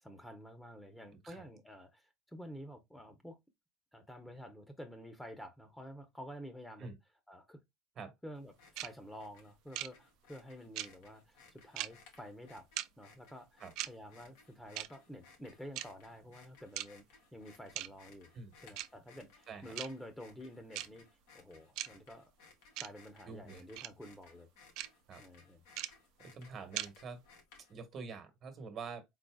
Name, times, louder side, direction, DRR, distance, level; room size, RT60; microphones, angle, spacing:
voice 1, 0.0-3.4 3.9-6.9 7.3-7.6 8.2-12.7 13.0-18.3 18.6-21.1 21.3-22.3 22.8-24.5 25.2-25.6, equal, 5° left, 1.0 m, -50 dB
sound 1, 8.5-27.9, left 4 dB, 85° left, 1.8 m, -62 dB
sound 2, 8.8-8.9 9.7-9.9 10.8-10.9 11.8-11.9 12.8-12.9 13.8-13.9 14.8-14.9 15.8-15.9 16.8-16.9 17.8-17.9 18.8-18.9 19.8-19.9 20.7-20.9 21.8-21.9 22.8-22.9 23.8-23.9 24.8-24.9 25.8-25.9 26.8-26.9, right 15 dB, 65° right, 0.4 m, -38 dB
voice 2, 23.3-23.6 25.1-25.2 26.2-27.2 27.7-29.0, right 4 dB, 45° right, 1.4 m, -46 dB
4.1 x 4.1 x 2.4 m
supercardioid pair, 105°, 0 cm